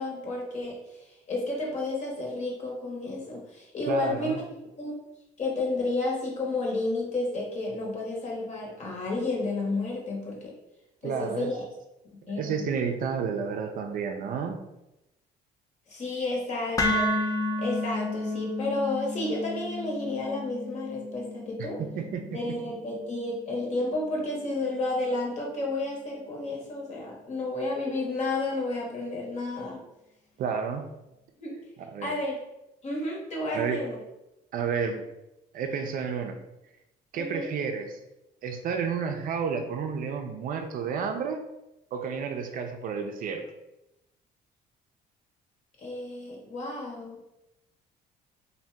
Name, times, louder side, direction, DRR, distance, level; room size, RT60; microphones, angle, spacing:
voice 1, 0.0-4.4 4.8-4.9 5.4-10.5 11.0-11.6 12.1-12.6 15.9-17.2 17.6-21.8 22.3-29.8 31.4-31.6 32.0-32.4 32.8-34.0 37.2-37.6 45.8-47.2, left 2 dB, 45° left, -1 dB, 0.9 m, -31 dB
voice 2, 3.8-4.4 11.0-11.5 12.3-14.6 21.6-22.6 30.4-30.8 31.8-32.1 33.5-33.8 34.5-35.0 35.5-36.4 37.1-38.0 38.4-41.4 41.9-43.4, right 6 dB, 55° right, 5 dB, 0.4 m, -31 dB
sound 1, 16.8-24.9, left 1 dB, 20° left, 0.4 m, -32 dB
2.6 x 2.1 x 3.4 m, 0.92 s
cardioid pair, 110°, 17 cm